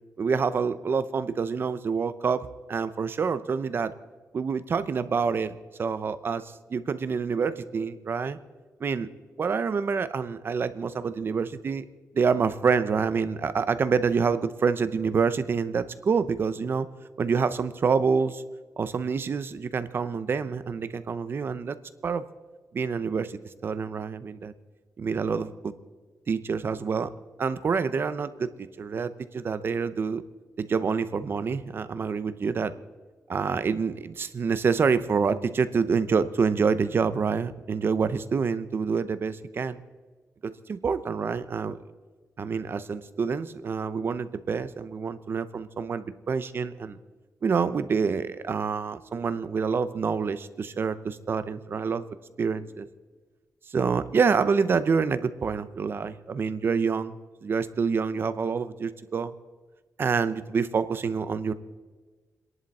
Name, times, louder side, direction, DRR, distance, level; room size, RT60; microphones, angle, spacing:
voice 1, 0.2-3.9 4.3-8.4 8.8-9.1 9.4-11.8 12.1-16.9 17.2-18.4 18.8-21.8 22.0-22.2 22.7-24.5 25.0-25.7 26.3-27.1 27.4-30.2 30.6-32.7 33.3-39.8 40.4-41.8 42.4-47.0 47.4-52.0 52.4-52.9 53.7-57.1 57.4-59.3 60.0-61.5, right 5 dB, 40° right, 13 dB, 0.7 m, -27 dB
29.5 x 11.0 x 4.3 m, 1.4 s
wide cardioid pair, 175°, 6 cm